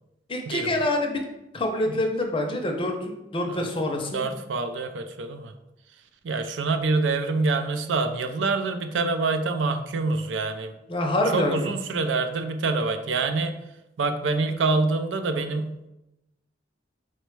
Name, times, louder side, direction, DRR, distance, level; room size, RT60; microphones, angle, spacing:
voice 1, 0.3-1.2 1.5-2.9 3.3-4.2 10.9-11.7, left 1 dB, 30° left, 3 dB, 0.5 m, -26 dB
voice 2, 4.1-5.5 6.2-10.8 11.3-13.5 14.0-15.7, right 3 dB, 80° right, 8 dB, 0.4 m, -26 dB
4.1 x 2.1 x 4.5 m, 0.92 s
head